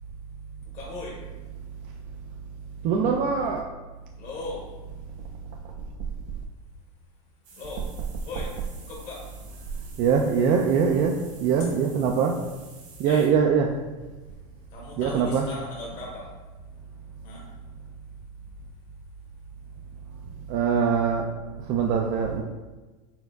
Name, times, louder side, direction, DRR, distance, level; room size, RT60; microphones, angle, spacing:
voice 1, 0.7-1.2 4.2-4.7 7.6-7.9 8.3-8.5 8.8-9.5 13.1-13.3 14.7-16.3 17.2-17.4, left 3 dB, 45° left, -4 dB, 0.9 m, -38 dB
voice 2, 2.8-3.7 10.0-12.4 13.0-13.7 15.0-15.4 20.5-21.3 21.6-22.4, right 6 dB, 50° right, 2 dB, 0.4 m, -22 dB
sound 1, 7.4-13.3, right 4 dB, 70° right, 1.5 m, -50 dB
4.3 x 3.7 x 2.3 m, 1.2 s
supercardioid pair, 110°, 18 cm